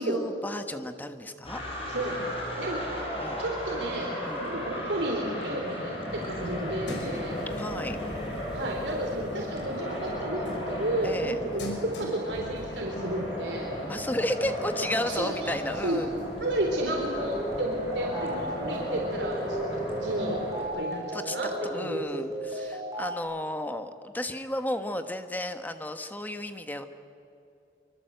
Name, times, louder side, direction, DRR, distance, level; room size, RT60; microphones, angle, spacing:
voice 1, 0.0-1.6 3.2-3.4 4.3-4.4 7.5-8.0 11.0-11.4 13.9-16.1 21.1-21.4 21.6-26.8, left 1 dB, 10° left, 8 dB, 1.3 m, -33 dB
sound 1, 1.4-20.6, equal, 30° left, 6.3 m, -35 dB
voice 2, 1.8-2.3 2.6-3.0 3.4-7.4 8.5-13.7 15.1-15.6 15.8-16.0 16.4-22.2 22.5-22.7, right 1 dB, 85° right, -1 dB, 3.9 m, -32 dB
sound 2, 6.1-20.9, left 1 dB, 90° left, 5.7 m, -45 dB
sound 3, 17.1-23.2, right 1 dB, 20° right, 7.7 m, -35 dB
25.0 x 24.5 x 8.0 m, 2.6 s
head